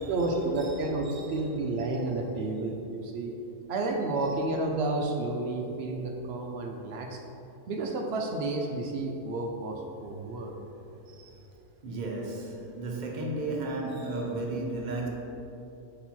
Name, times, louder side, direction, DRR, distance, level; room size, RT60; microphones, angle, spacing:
voice 1, 0.0-3.3 3.7-7.2 7.7-10.5, right 2 dB, 70° right, 1 dB, 0.6 m, -31 dB
voice 2, 1.0-1.5 11.0-11.4 11.8-15.1, right 2 dB, 40° right, -1 dB, 0.7 m, -34 dB
5.4 x 4.3 x 4.3 m, 2.9 s
omnidirectional pair, 1.6 m